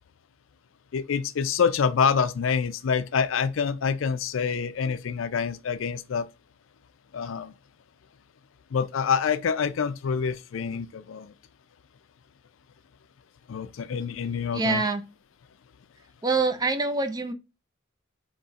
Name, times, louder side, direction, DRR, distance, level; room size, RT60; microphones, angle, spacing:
voice 1, 0.9-6.2 7.1-7.5 8.7-11.3 13.5-14.8, left 6 dB, 75° left, 0.4 m, -26 dB
voice 2, 14.2-15.0 16.2-17.3, right 3 dB, 20° right, 0.4 m, -26 dB
4.1 x 2.9 x 3.6 m
head